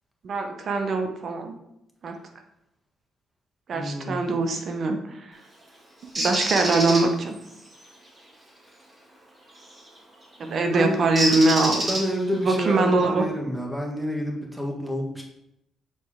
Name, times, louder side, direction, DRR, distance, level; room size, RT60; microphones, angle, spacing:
voice 1, 0.2-1.5 2.0-2.2 3.7-5.3 6.1-7.4 10.5-11.9 12.4-13.2, right 3 dB, 55° right, 5 dB, 0.9 m, -23 dB
voice 2, 3.7-4.2 10.4-11.0 11.7-15.2, equal, 5° right, 0 dB, 1.5 m, -29 dB
Bird, 6.2-7.0 9.6-9.9 11.2-12.4, right 1 dB, 25° right, 2.2 m, -26 dB
6.7 x 4.4 x 3.6 m, 0.83 s
cardioid pair, 90°, 0 cm